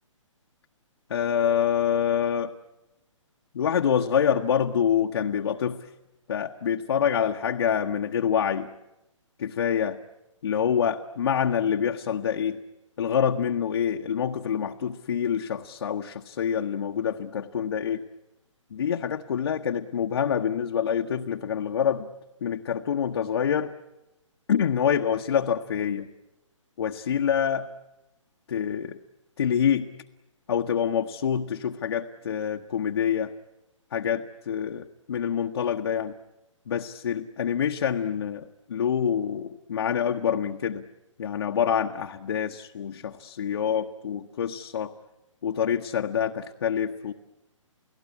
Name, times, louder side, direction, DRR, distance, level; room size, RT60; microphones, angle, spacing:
voice 1, 1.1-2.5 3.5-5.9 6.3-8.7 9.4-10.0 10.4-12.6 13.0-18.0 18.7-22.1 22.4-23.7 24.5-26.1 26.8-27.7 28.5-29.0 29.4-29.9 30.5-33.3 33.9-36.1 36.7-40.8 41.2-44.9 45.4-47.1, left 8 dB, 55° left, 3 dB, 1.1 m, -26 dB
29.5 x 17.5 x 9.8 m, 0.95 s
figure-of-eight pair, 135°, 17 cm